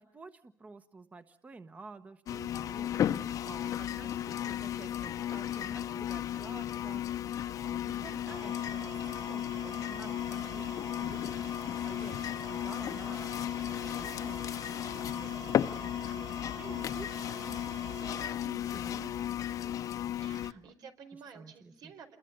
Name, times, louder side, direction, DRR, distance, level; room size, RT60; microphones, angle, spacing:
voice 1, 0.0-10.7 10.9-11.3 11.8-14.5 14.9-19.8 20.5-20.7 21.3-21.7, right 3 dB, 20° right, 10 dB, 1.2 m, -50 dB
sound 1, 2.3-20.5, left 11 dB, 60° left, 0.9 m, -35 dB
sound 2, 8.3-18.3, right 4 dB, 60° right, 7.8 m, -49 dB
voice 2, 20.2-22.2, right 6 dB, 80° right, 7 dB, 4.8 m, -51 dB
30.0 x 22.5 x 6.8 m, 0.68 s
cardioid pair, 165°, 7 cm